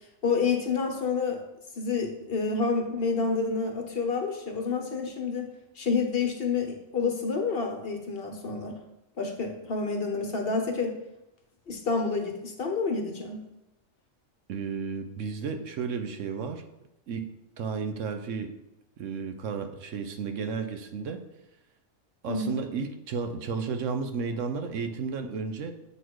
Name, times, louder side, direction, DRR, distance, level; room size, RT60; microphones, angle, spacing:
voice 1, 0.2-1.4 1.8-5.5 5.8-8.8 9.2-10.9 11.7-13.4 22.2-22.6, left 4 dB, 50° left, 3 dB, 1.0 m, -28 dB
voice 2, 14.5-16.6 17.1-17.3 17.6-18.5 19.0-21.2 22.2-25.7, right 5 dB, 70° right, 7 dB, 1.0 m, -33 dB
7.8 x 4.1 x 4.6 m, 0.91 s
omnidirectional pair, 1.4 m